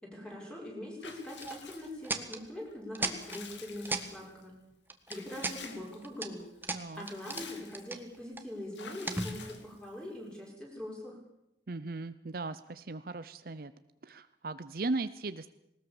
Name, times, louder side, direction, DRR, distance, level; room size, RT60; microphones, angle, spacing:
voice 1, 0.0-4.5 5.1-6.4 6.9-11.2, left 1 dB, 5° left, -2 dB, 6.4 m, -43 dB
Water / Bathtub (filling or washing) / Liquid, 1.0-2.2 2.7-4.4 5.1-6.0 6.4-6.5 6.8-8.0 8.7-10.0, left 6 dB, 85° left, 2.5 m, -49 dB
sound 1, 1.4-1.5 2.0-2.4 2.9-3.4 3.9-4.1 4.9-5.6 6.0-6.3 6.6-7.5 7.7-8.4 9.0-9.7, right 2 dB, 10° right, 1.5 m, -35 dB
voice 2, 6.7-7.1 11.7-13.7 14.0-15.5, right 3 dB, 55° right, 13 dB, 0.7 m, -37 dB
19.5 x 19.5 x 7.2 m, 0.84 s
head